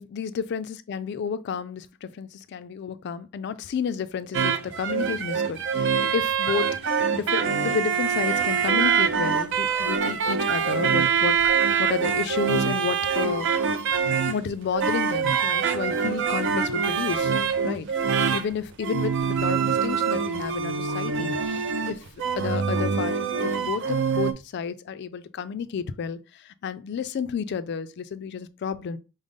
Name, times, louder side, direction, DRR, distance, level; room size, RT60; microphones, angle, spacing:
voice 1, 0.0-13.5 14.3-17.3 17.6-17.9 18.3-22.0 22.4-29.0, left 6 dB, 50° left, 0.3 m, -31 dB
sound 1, 4.3-24.3, right 6 dB, 55° right, 0.4 m, -24 dB
5.0 x 2.0 x 3.6 m
head